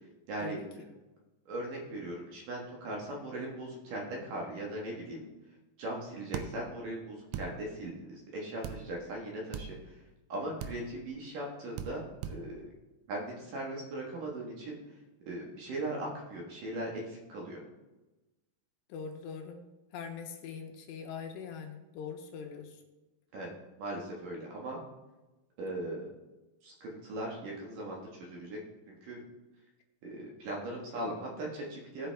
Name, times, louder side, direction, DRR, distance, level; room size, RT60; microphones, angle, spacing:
voice 1, 0.3-0.6 1.5-5.3 5.8-10.0 10.3-12.7 13.1-14.8 15.3-17.6 23.3-23.5 23.8-24.8 25.6-26.1 26.6-28.6 28.9-29.2 30.0-32.1, right 1 dB, 60° right, -2 dB, 2.7 m, -39 dB
sound 1, 6.3-6.5 7.3-7.5 8.6-8.8 9.5-9.7 10.6-10.8 11.8-11.9 12.2-12.4, right 8 dB, 90° right, 3.0 m, -37 dB
voice 2, 18.9-19.6 19.9-22.8, left 6 dB, 80° left, 3 dB, 3.0 m, -42 dB
17.0 x 5.9 x 3.4 m, 1.1 s
omnidirectional pair, 5.1 m